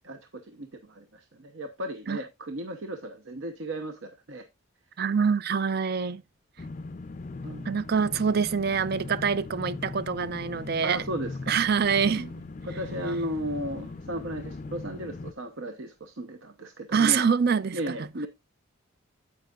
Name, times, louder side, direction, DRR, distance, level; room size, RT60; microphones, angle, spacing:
voice 1, 0.0-4.5 7.4-7.7 10.8-11.6 12.2-12.3 12.6-17.3 17.7-18.3, right 1 dB, 65° right, 0.8 m, -35 dB
voice 2, 5.0-6.2 7.7-11.0 11.5-12.3 16.9-17.8, right 6 dB, 45° right, 0.4 m, -25 dB
sound 1, 6.6-15.3, left 3 dB, 35° left, 0.4 m, -39 dB
9.6 x 8.3 x 2.4 m
head